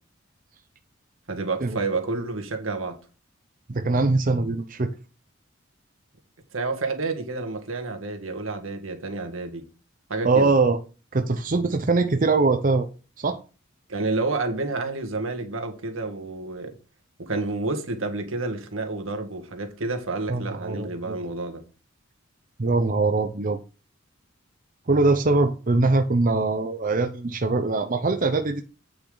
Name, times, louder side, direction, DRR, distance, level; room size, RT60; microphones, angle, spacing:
voice 1, 1.3-3.0 6.5-9.6 10.1-10.5 13.9-16.8 17.2-21.6, right 3 dB, 85° right, 1.8 m, -29 dB
voice 2, 3.7-4.9 10.2-10.8 11.1-12.9 13.2-13.4 20.3-21.2 22.6-23.6 24.9-28.6, right 3 dB, 40° right, 0.7 m, -22 dB
8.6 x 6.8 x 3.9 m
head